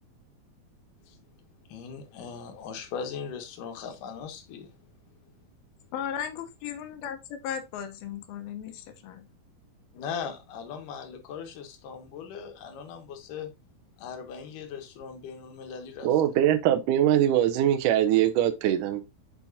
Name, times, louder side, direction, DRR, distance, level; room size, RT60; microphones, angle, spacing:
voice 1, 1.7-4.8 9.9-13.5 14.0-16.2, left 6 dB, 70° left, 2.6 m, -39 dB
voice 2, 5.9-7.2 7.4-9.3, left 8 dB, 85° left, 2.7 m, -36 dB
voice 3, 16.0-19.0, right 11 dB, 80° right, 2.0 m, -22 dB
7.0 x 5.6 x 2.7 m
omnidirectional pair, 4.3 m